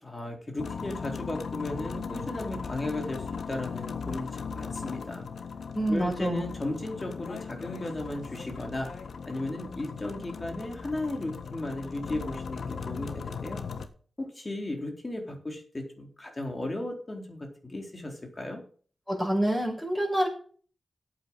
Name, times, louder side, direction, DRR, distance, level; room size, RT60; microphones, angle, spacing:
voice 1, 0.0-5.3 5.9-8.9 9.3-13.6 14.2-18.6, left 2 dB, 35° left, 2 dB, 4.0 m, -35 dB
sound 1, 0.6-13.9, left 5 dB, 75° left, 1.3 m, -38 dB
voice 2, 5.7-6.4 19.1-20.3, right 1 dB, 5° left, 1 dB, 6.3 m, -27 dB
8.8 x 8.5 x 7.3 m, 0.44 s
cardioid pair, 60°, 0 cm